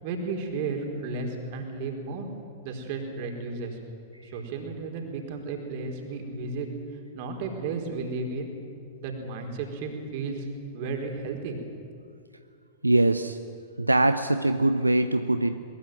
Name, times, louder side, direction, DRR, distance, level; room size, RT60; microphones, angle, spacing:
voice 1, 0.0-2.3 2.6-3.8 4.2-6.7 7.1-8.5 9.0-10.5 10.7-11.6, right 4 dB, 45° right, 3 dB, 4.6 m, -33 dB
voice 2, 12.8-13.4 13.8-15.6, right 2 dB, 85° right, 10 dB, 0.7 m, -22 dB
22.5 x 21.0 x 9.2 m, 2.4 s
figure-of-eight pair, 100°, 0 cm